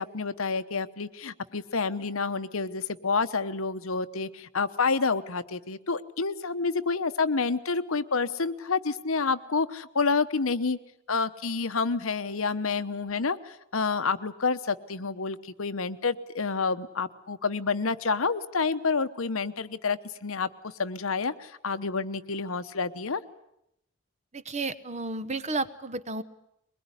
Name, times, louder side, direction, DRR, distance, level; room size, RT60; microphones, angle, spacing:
voice 1, 0.0-10.8 11.1-20.5 20.8-23.2, left 4 dB, 70° left, 11 dB, 1.0 m, -29 dB
voice 2, 24.3-26.2, right 3 dB, 30° right, 13 dB, 1.0 m, -32 dB
22.5 x 21.5 x 9.9 m, 0.79 s
head